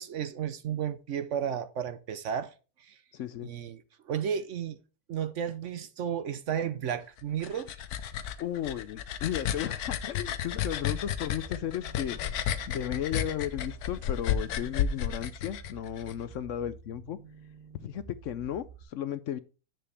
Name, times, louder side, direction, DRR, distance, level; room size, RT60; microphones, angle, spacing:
voice 1, 0.0-2.5 2.8-3.0 3.4-4.8 5.1-7.8, right 8 dB, 60° right, 0.9 m, -33 dB
voice 2, 3.1-3.5 8.4-12.2 12.7-17.2 17.8-19.4, left 10 dB, 65° left, 0.8 m, -34 dB
sound 1, 7.2-16.1, left 9 dB, 90° left, 1.3 m, -33 dB
sound 2, 10.8-18.8, right 7 dB, 40° right, 1.1 m, -50 dB
9.9 x 7.6 x 3.3 m
omnidirectional pair, 1.6 m